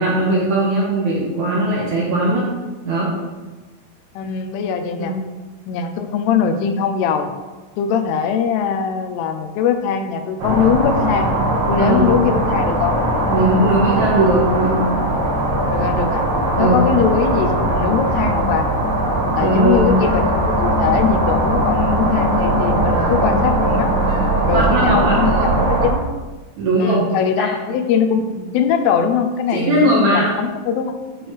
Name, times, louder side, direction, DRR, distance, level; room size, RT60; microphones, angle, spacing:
voice 1, 0.0-2.5 2.8-3.1 5.0-5.1 11.8-12.2 13.3-14.8 16.6-16.8 19.4-20.0 24.5-25.5 26.6-27.0 27.4-27.5 29.5-30.3, right 1 dB, 70° right, -5 dB, 1.8 m, -18 dB
voice 2, 4.2-5.1 5.7-7.3 7.8-11.3 11.7-13.0 15.7-16.3 16.6-18.7 19.4-23.9 24.5-26.1 26.8-30.9, left 7 dB, 85° left, 7 dB, 2.6 m, -21 dB
sound 1, 10.4-25.9, right 1 dB, 50° right, 1.8 m, -19 dB
10.5 x 4.7 x 3.3 m, 1.2 s
omnidirectional pair, 4.7 m